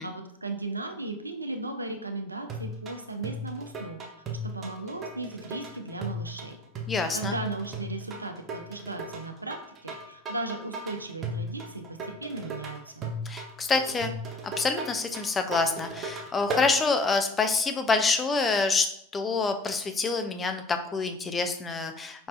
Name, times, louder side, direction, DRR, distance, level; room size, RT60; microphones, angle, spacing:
voice 1, 0.0-4.0 4.4-6.6 7.1-13.1, right 2 dB, 80° right, 6 dB, 0.5 m, -36 dB
sound 1, 2.5-16.7, right 1 dB, 25° right, 0.7 m, -37 dB
voice 2, 6.9-7.3 13.3-14.1 14.6-22.3, left 4 dB, 15° left, 7 dB, 0.4 m, -27 dB
5.1 x 3.2 x 2.4 m, 0.69 s
figure-of-eight pair, 90°, 0 cm